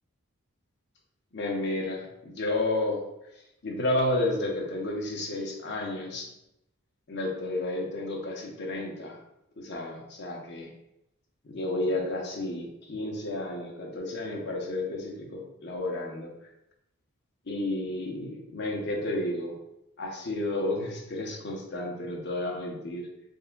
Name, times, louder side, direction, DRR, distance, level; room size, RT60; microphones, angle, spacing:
voice 1, 1.3-3.0 3.6-6.3 7.1-9.2 9.6-10.7 11.5-16.3 17.5-19.6 20.0-23.1, left 2 dB, 50° left, -1 dB, 0.8 m, -31 dB
4.1 x 3.4 x 2.2 m, 0.85 s
head